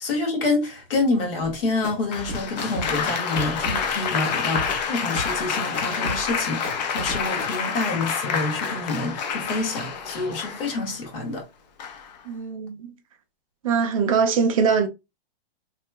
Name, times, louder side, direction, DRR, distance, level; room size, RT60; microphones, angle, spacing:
voice 1, 0.0-6.6 6.9-11.5, left 3 dB, 70° left, 1.5 m, -27 dB
sound 1, 1.4-7.5, equal, 20° left, 1.0 m, -35 dB
Applause, 2.1-11.0 11.8-12.2, left 6 dB, 45° left, 0.6 m, -28 dB
voice 2, 12.3-12.9 13.6-14.9, right 6 dB, 35° right, 0.4 m, -22 dB
3.1 x 2.7 x 2.2 m
hypercardioid pair, 160°, 29 cm